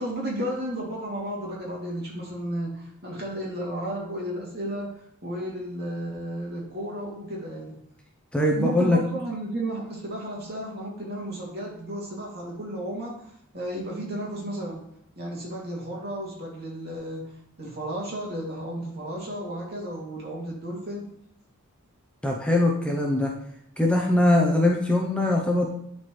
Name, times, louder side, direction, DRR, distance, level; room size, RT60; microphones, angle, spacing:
voice 1, 0.0-7.7 8.6-14.8 15.2-21.1, right 1 dB, 50° right, -3 dB, 2.6 m, -33 dB
voice 2, 8.3-9.0 22.2-23.3 23.8-25.7, left 1 dB, 5° left, 0 dB, 0.7 m, -21 dB
11.0 x 4.4 x 3.2 m, 0.72 s
head